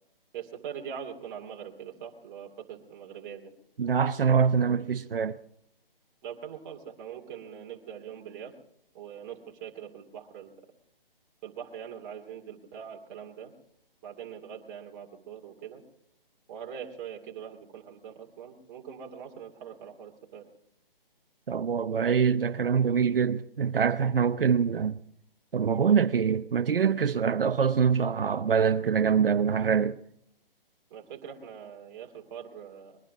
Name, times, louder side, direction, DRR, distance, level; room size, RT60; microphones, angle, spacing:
voice 1, 0.3-3.5 6.2-8.5 8.9-10.6 11.4-13.5 14.0-15.8 16.5-20.4 30.9-33.0, right 8 dB, 20° right, 2.6 m, -42 dB
voice 2, 3.8-5.4 21.5-25.0 25.5-30.0, right 6 dB, 70° right, 0.9 m, -24 dB
21.5 x 10.5 x 6.1 m
hypercardioid pair, 165°, 29 cm